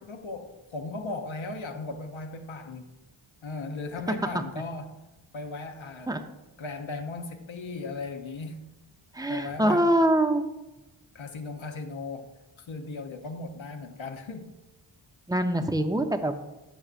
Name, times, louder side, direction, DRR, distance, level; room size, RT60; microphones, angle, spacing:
voice 1, 0.0-2.9 3.4-5.0 5.3-6.2 6.6-8.7 9.3-9.9 11.1-12.3 12.6-14.6, left 3 dB, 70° left, 5 dB, 0.8 m, -37 dB
voice 2, 9.1-10.4 15.3-16.3, right 1 dB, 10° right, 7 dB, 0.6 m, -24 dB
9.9 x 6.6 x 2.5 m, 1.0 s
wide cardioid pair, 50°, 50 cm